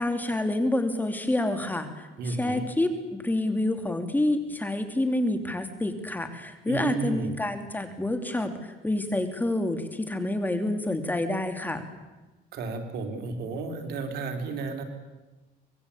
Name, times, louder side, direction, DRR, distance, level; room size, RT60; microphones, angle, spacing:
voice 1, 0.0-11.8, left 1 dB, 10° left, 6 dB, 3.0 m, -28 dB
voice 2, 2.2-2.6 6.7-7.4 12.5-14.8, right 4 dB, 70° right, 5 dB, 4.0 m, -32 dB
25.0 x 21.0 x 8.6 m, 1.2 s
cardioid pair, 110°, 17 cm